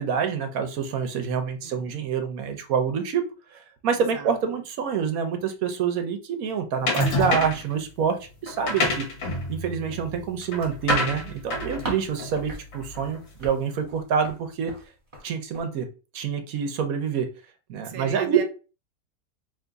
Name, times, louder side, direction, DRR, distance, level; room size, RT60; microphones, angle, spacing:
voice 1, 0.0-3.2 3.5-8.2 8.4-9.1 9.5-14.7 15.2-15.9 16.1-17.3 17.7-18.4, right 7 dB, 70° right, 6 dB, 1.1 m, -27 dB
sound 1, 6.9-7.7 8.5-13.2, left 2 dB, 60° left, 1.5 m, -28 dB
sound 2, 10.4-12.1 12.4-12.6 12.9-14.4 14.7-14.8 15.1-15.3 15.5-15.7, right 1 dB, 35° right, 1.5 m, -34 dB
voice 2, 17.8-18.4, right 8 dB, 55° right, 5 dB, 0.4 m, -37 dB
3.4 x 3.0 x 3.9 m, 0.34 s
omnidirectional pair, 1.6 m